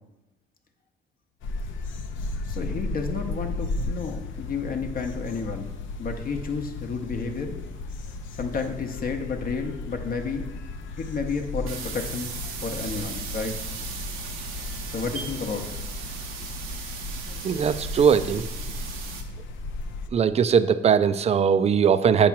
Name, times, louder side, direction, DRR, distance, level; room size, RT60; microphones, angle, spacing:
sound 1, 1.4-20.1, left 2 dB, 75° left, 0.6 m, -35 dB
voice 1, 2.5-5.7 6.0-7.6 8.4-10.5 11.0-12.3 12.6-13.5 14.9-15.7, left 5 dB, 45° left, 4 dB, 0.8 m, -31 dB
sound 2, 11.7-19.2, right 6 dB, 90° right, 0.8 m, -37 dB
voice 2, 17.4-18.4 20.1-22.3, right 7 dB, 35° right, 13 dB, 0.3 m, -20 dB
7.2 x 3.0 x 5.8 m, 0.98 s
cardioid pair, 90°, 20 cm